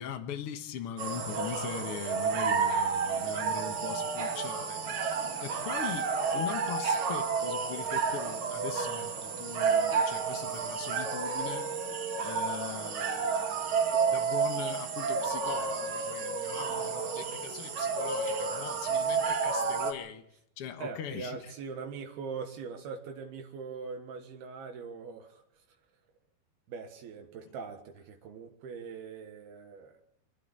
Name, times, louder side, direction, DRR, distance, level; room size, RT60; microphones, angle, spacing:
voice 1, 0.0-4.8 5.4-11.7 12.2-20.2 20.6-21.5, left 8 dB, 65° left, 1.4 m, -41 dB
sound 1, 1.0-19.9, right 5 dB, 60° right, 3.8 m, -31 dB
voice 2, 20.8-25.6 26.7-30.0, right 5 dB, 75° right, 3.5 m, -42 dB
27.0 x 12.0 x 8.8 m
omnidirectional pair, 4.5 m